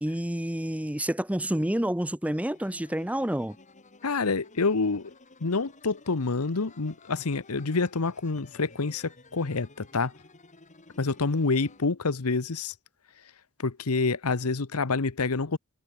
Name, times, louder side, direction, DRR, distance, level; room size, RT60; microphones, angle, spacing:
voice 1, 0.0-3.6, right 1 dB, 5° right, 1.0 m, -29 dB
sound 1, 2.5-11.9, left 3 dB, 35° left, 3.3 m, -55 dB
voice 2, 4.0-5.1 5.4-10.1 11.0-12.7 13.6-15.6, left 4 dB, 80° left, 1.0 m, -27 dB
head